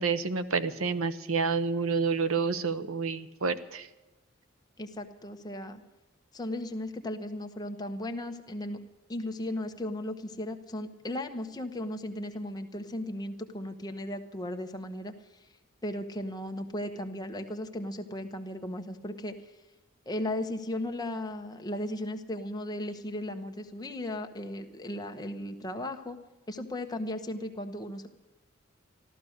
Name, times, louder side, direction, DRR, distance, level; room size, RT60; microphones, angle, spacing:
voice 1, 0.0-3.9, right 5 dB, 85° right, 12 dB, 0.9 m, -29 dB
voice 2, 4.8-5.8 6.3-8.8 9.1-15.1 15.8-19.3 20.1-26.2 26.5-28.1, left 1 dB, 20° left, 5 dB, 1.1 m, -36 dB
14.0 x 13.0 x 6.6 m, 1.0 s
head